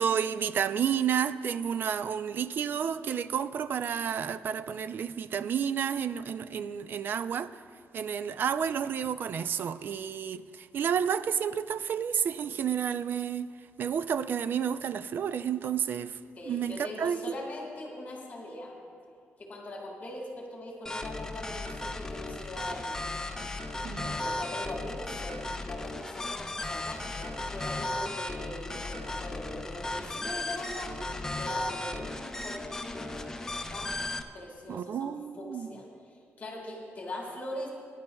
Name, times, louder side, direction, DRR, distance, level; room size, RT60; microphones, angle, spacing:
voice 1, 0.0-7.6 7.9-13.5 13.8-16.2 16.5-17.3 23.8-24.2 34.7-35.7, right 8 dB, 55° right, 13 dB, 0.4 m, -31 dB
voice 2, 16.4-18.7 19.4-23.2 23.6-23.7 24.0-30.9 31.3-33.1 33.4-33.9 34.3-35.9 36.4-37.7, left 1 dB, 40° left, -1 dB, 1.8 m, -41 dB
sound 1, 20.9-34.2, left 2 dB, 15° left, 0.5 m, -36 dB
21.5 x 10.5 x 2.3 m, 2.3 s
cardioid pair, 140°, 4 cm